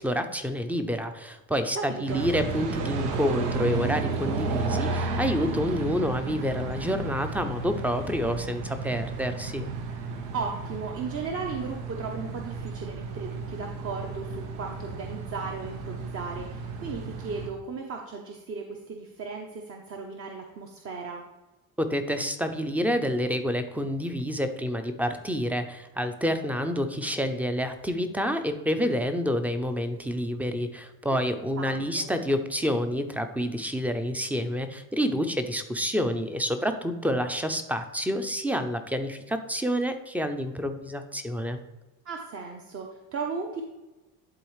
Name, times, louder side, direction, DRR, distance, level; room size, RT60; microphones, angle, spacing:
voice 1, 0.0-9.7 21.8-41.6, equal, 5° right, 8 dB, 0.5 m, -28 dB
voice 2, 1.7-2.3 10.3-21.2 31.6-32.1 42.0-43.6, right 5 dB, 35° right, 2 dB, 0.8 m, -36 dB
sound 1, 2.1-17.5, right 3 dB, 90° right, 1.0 m, -33 dB
11.0 x 3.9 x 3.2 m, 1.1 s
supercardioid pair, 115°, 40 cm